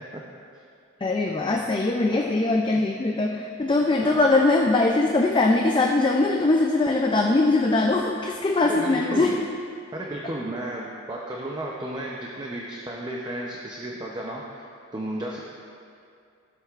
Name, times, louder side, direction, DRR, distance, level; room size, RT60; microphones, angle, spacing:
voice 1, 1.0-9.4, left 2 dB, 25° left, 1 dB, 0.4 m, -21 dB
voice 2, 8.6-9.3 9.9-14.6 14.9-15.5, right 1 dB, 20° right, -2 dB, 0.7 m, -33 dB
15.0 x 7.9 x 2.5 m, 2.4 s
head